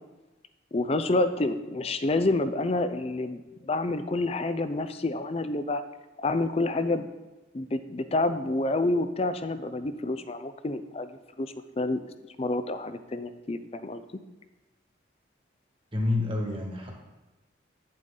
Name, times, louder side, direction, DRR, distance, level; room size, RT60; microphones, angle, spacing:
voice 1, 0.7-5.8 6.2-7.1 7.5-11.1 11.4-12.0 12.4-14.0, left 2 dB, 30° left, 11 dB, 0.5 m, -28 dB
voice 2, 15.9-16.9, left 2 dB, 25° right, 0 dB, 1.5 m, -28 dB
9.6 x 7.5 x 3.8 m, 1.1 s
head